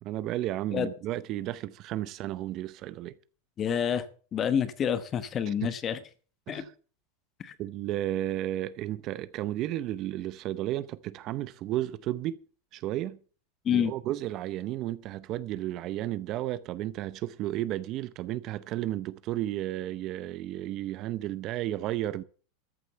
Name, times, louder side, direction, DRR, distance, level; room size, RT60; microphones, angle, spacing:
voice 1, 0.0-3.2 5.5-5.7 6.5-6.7 7.6-12.4 12.7-13.2 13.7-22.2, right 14 dB, 35° right, 0.6 m, -33 dB
voice 2, 3.6-4.0 4.3-6.0 6.5-6.6 7.4-7.5 13.6-13.9, left 8 dB, 25° left, 1.1 m, -28 dB
14.0 x 8.1 x 6.8 m
supercardioid pair, 160°, 0 cm